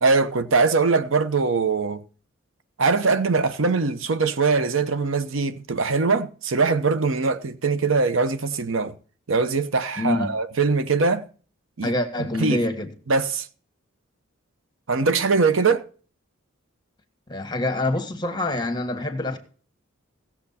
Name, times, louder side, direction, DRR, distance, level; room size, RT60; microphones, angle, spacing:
voice 1, 0.0-2.0 2.8-8.9 9.3-11.2 11.8-11.9 12.4-12.7 13.1-13.5 14.9-15.9, right 4 dB, 70° right, 0.8 m, -22 dB
voice 2, 10.0-10.3 11.8-12.9 17.3-19.4, left 2 dB, 20° left, 1.6 m, -26 dB
17.0 x 7.3 x 4.2 m
head